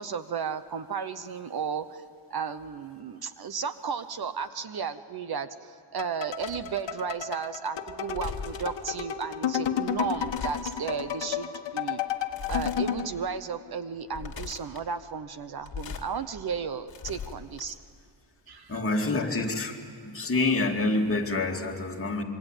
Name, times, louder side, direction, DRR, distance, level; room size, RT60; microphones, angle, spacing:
voice 1, 0.0-2.0 2.3-12.0 12.5-17.8 18.5-18.8, right 6 dB, 50° right, 12 dB, 1.0 m, -34 dB
sound 1, 6.0-13.1, left 8 dB, 60° left, 1.4 m, -32 dB
sound 2, 6.4-6.8 7.9-8.8 9.9-10.9 12.3-12.8 13.3-13.4 14.0-14.8 15.5-16.1 16.5-17.9, left 6 dB, 45° left, 2.2 m, -39 dB
voice 2, 18.7-19.8 20.0-22.2, left 2 dB, 25° left, 1 dB, 2.5 m, -27 dB
26.5 x 23.5 x 9.1 m, 2.2 s
wide cardioid pair, 145°, 48 cm